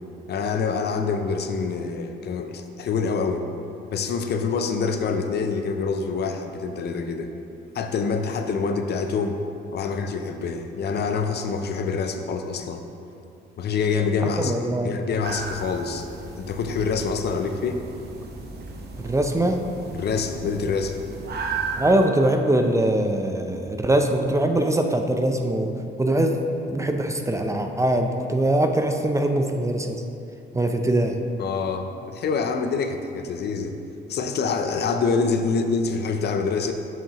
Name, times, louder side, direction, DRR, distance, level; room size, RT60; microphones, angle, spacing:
voice 1, 0.3-3.4 3.9-7.3 7.7-9.4 9.7-12.8 13.6-14.5 14.8-16.1 16.4-17.8 19.9-21.0 31.4-33.8 34.1-36.7, left 5 dB, 55° left, 6 dB, 0.5 m, -26 dB
voice 2, 14.4-15.0 19.0-19.6 21.8-25.7 26.0-26.4 26.7-30.0 30.5-31.2, right 1 dB, 15° right, 5 dB, 0.4 m, -22 dB
sound 1, 15.2-22.1, right 4 dB, 55° right, 0.8 m, -35 dB
7.1 x 5.8 x 2.9 m, 2.7 s
cardioid pair, 90°, 20 cm